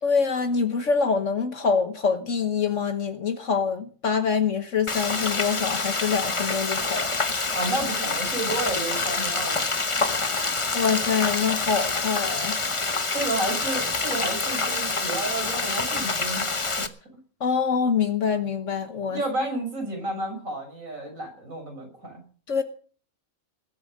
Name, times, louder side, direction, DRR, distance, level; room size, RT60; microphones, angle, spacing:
voice 1, 0.0-7.2 10.7-12.6 17.4-19.2 22.5-22.6, left 5 dB, 60° left, 1.5 m, -25 dB
Frying (food), 4.9-16.9, left 3 dB, 25° left, 1.0 m, -27 dB
voice 2, 7.5-10.0 13.1-16.5 16.8-16.9 19.1-22.2, right 2 dB, 70° right, 6.8 m, -31 dB
20.0 x 8.7 x 6.5 m
omnidirectional pair, 1.5 m